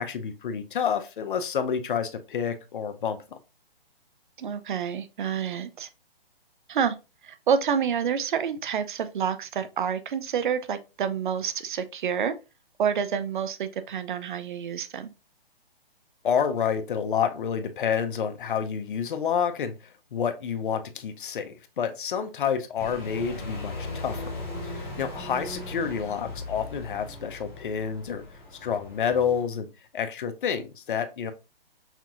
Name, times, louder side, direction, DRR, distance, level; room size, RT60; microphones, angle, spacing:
voice 1, 0.0-3.4 16.2-24.2 24.6-28.2 28.6-29.7 29.9-31.3, left 7 dB, 55° left, 0.7 m, -29 dB
voice 2, 4.4-5.9 6.7-6.9 7.2-12.3 12.8-15.1, right 7 dB, 55° right, 0.6 m, -28 dB
sound 1, 22.8-29.4, left 2 dB, 10° left, 0.6 m, -38 dB
5.8 x 2.8 x 2.4 m
hypercardioid pair, 150°, 30 cm